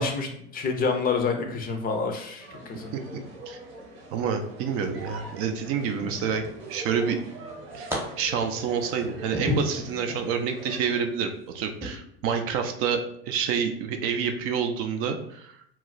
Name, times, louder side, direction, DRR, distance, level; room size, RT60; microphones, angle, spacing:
voice 1, 0.0-2.9, left 4 dB, 30° left, 4 dB, 0.4 m, -28 dB
sound 1, 2.4-11.0, right 2 dB, 75° right, 0.9 m, -42 dB
voice 2, 4.1-6.4 6.7-7.2 7.7-15.5, right 6 dB, 50° right, 6 dB, 0.4 m, -28 dB
sound 2, 4.8-5.3 6.0-6.9 7.2-8.0 8.4-10.3 10.8-11.0 11.7-11.9, left 2 dB, 10° right, 0.8 m, -34 dB
2.3 x 2.0 x 3.8 m, 0.71 s
hypercardioid pair, 90°, 31 cm